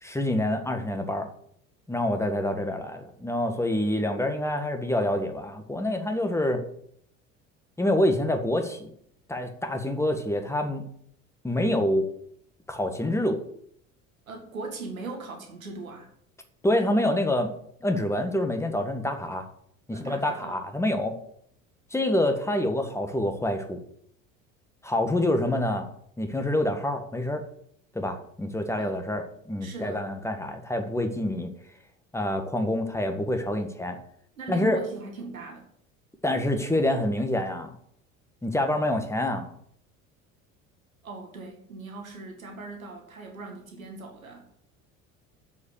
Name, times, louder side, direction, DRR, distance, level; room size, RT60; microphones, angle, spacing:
voice 1, 0.0-1.3 1.9-6.6 7.8-8.9 9.3-10.8 11.4-12.1 12.7-13.4 16.6-17.5 17.8-19.4 19.9-21.2 21.9-23.8 24.8-25.9 26.2-27.4 27.9-31.5 32.1-34.0 34.5-34.8 36.2-37.8 38.4-39.5, left 1 dB, 5° left, 5 dB, 1.8 m, -26 dB
voice 2, 14.3-16.1 19.9-20.6 28.8-29.2 29.6-30.0 31.2-31.3 34.4-35.7 41.0-44.5, right 3 dB, 80° right, 2 dB, 2.1 m, -39 dB
7.7 x 7.3 x 8.4 m, 0.68 s
figure-of-eight pair, 65°, 41 cm